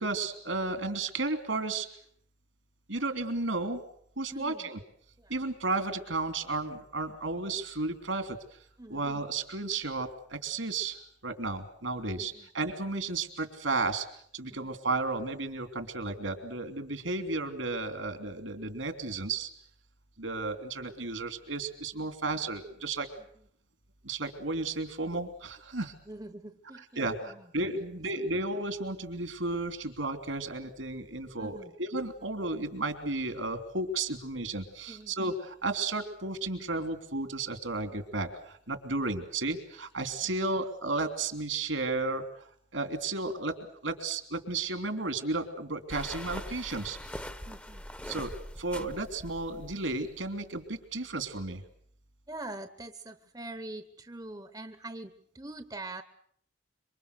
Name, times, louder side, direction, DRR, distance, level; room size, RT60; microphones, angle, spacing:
voice 1, 0.0-1.9 2.9-3.8 4.2-4.8 5.3-8.4 8.9-14.1 14.3-19.5 20.2-23.1 24.0-25.9 27.0-43.6 43.8-47.0 48.0-48.3 48.6-51.6, right 3 dB, 80° right, 8 dB, 3.1 m, -33 dB
voice 2, 4.3-4.7 5.2-5.4 8.8-9.0 12.2-12.5 14.5-14.7 26.1-27.5 27.8-28.0 31.4-31.7 34.9-35.1 39.0-39.1 40.2-40.3 47.5-47.8 52.3-56.0, right 2 dB, 20° right, 10 dB, 0.9 m, -44 dB
sound 1, 45.9-50.3, equal, 5° left, 0.9 m, -42 dB
26.5 x 24.5 x 6.8 m, 0.65 s
head